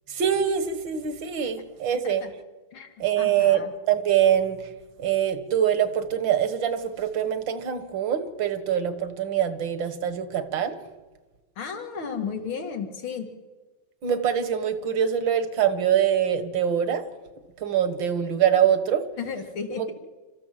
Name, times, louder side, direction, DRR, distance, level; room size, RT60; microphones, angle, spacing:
voice 1, 0.1-2.2 3.0-4.7 5.0-10.8 14.0-17.1 17.6-19.1 19.8-19.9, right 9 dB, 70° right, 11 dB, 2.1 m, -24 dB
voice 2, 3.2-3.7 11.6-13.3 19.2-19.9, left 6 dB, 85° left, 5 dB, 2.9 m, -33 dB
28.0 x 14.0 x 7.6 m, 1.3 s
omnidirectional pair, 2.2 m